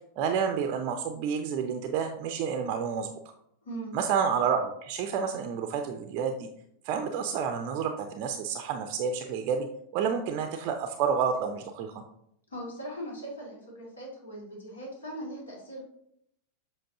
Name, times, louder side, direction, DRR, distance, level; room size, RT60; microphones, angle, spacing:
voice 1, 0.2-3.1 3.9-6.5 6.8-9.7 9.9-12.0, right 6 dB, 40° right, 6 dB, 0.5 m, -29 dB
voice 2, 3.6-4.0 12.5-15.9, right 1 dB, 70° left, -2 dB, 2.1 m, -40 dB
7.5 x 5.2 x 2.7 m, 0.74 s
figure-of-eight pair, 90°, 0 cm